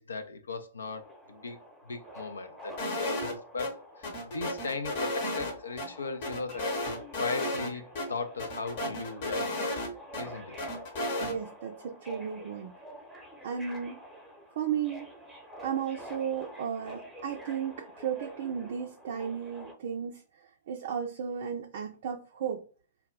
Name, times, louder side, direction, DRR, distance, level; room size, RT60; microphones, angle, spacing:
voice 1, 0.0-1.6 1.8-6.7 7.1-9.5 10.2-10.6, left 4 dB, 75° left, 0.4 m, -38 dB
Subway metro underground, 0.9-19.7, equal, ahead, 0.8 m, -48 dB
sound 1, 2.8-3.3 3.6-3.7 4.0-5.9 6.2-7.7 8.0-8.1 8.4-10.2 10.6-11.3, left 1 dB, 50° left, 0.8 m, -33 dB
voice 2, 11.2-12.7 13.4-14.0 14.6-15.1 15.6-22.6, right 8 dB, 55° right, 0.4 m, -34 dB
2.2 x 2.0 x 3.6 m
figure-of-eight pair, 105°, 0 cm